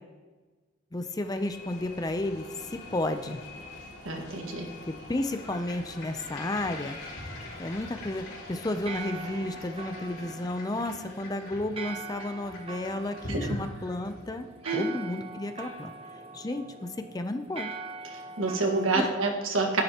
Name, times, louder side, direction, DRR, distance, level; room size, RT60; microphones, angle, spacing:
voice 1, 0.9-3.4 4.9-7.0 7.6-15.9 16.3-17.7 18.9-19.1, left 1 dB, 20° left, 8 dB, 0.5 m, -32 dB
sound 1, 1.0-10.9, left 2 dB, 60° left, 2.8 m, -47 dB
sound 2, 1.3-19.0, right 4 dB, 30° right, 0.8 m, -45 dB
voice 2, 4.0-4.7 13.3-13.4 14.6-14.8 18.1-19.8, right 3 dB, 85° right, 2 dB, 1.6 m, -28 dB
sound 3, 5.1-14.4, left 1 dB, 90° left, 3.3 m, -44 dB
11.0 x 10.5 x 2.9 m, 1.3 s
head